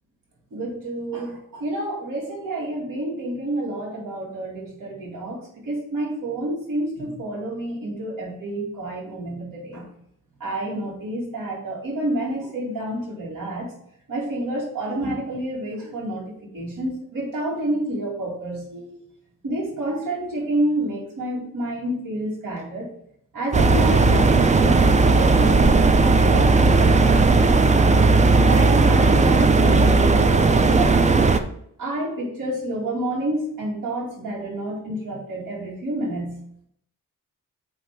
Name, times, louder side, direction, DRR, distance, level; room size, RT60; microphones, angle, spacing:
voice 1, 0.5-9.9 10.4-13.7 14.1-16.3 16.5-19.0 19.4-22.9 23.3-27.3 28.4-31.1 31.8-36.4, right 1 dB, 90° right, -5 dB, 2.2 m, -29 dB
sound 1, 23.5-31.4, right 3 dB, 25° right, 0.3 m, -16 dB
7.7 x 2.7 x 4.6 m, 0.70 s
wide cardioid pair, 160°, 33 cm